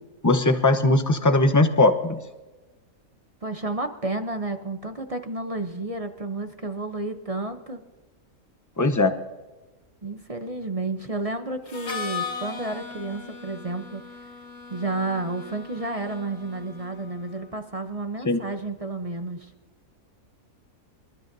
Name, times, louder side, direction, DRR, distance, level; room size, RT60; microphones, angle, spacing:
voice 1, 0.2-2.2 8.8-9.1 18.2-18.4, left 2 dB, 20° left, 8 dB, 0.6 m, -19 dB
voice 2, 3.4-7.8 10.0-14.0 14.7-19.5, right 2 dB, 35° right, 7 dB, 0.6 m, -31 dB
Harmonica, 11.7-17.4, left 5 dB, 70° left, 2.6 m, -38 dB
27.5 x 13.0 x 2.7 m, 1.2 s
omnidirectional pair, 1.6 m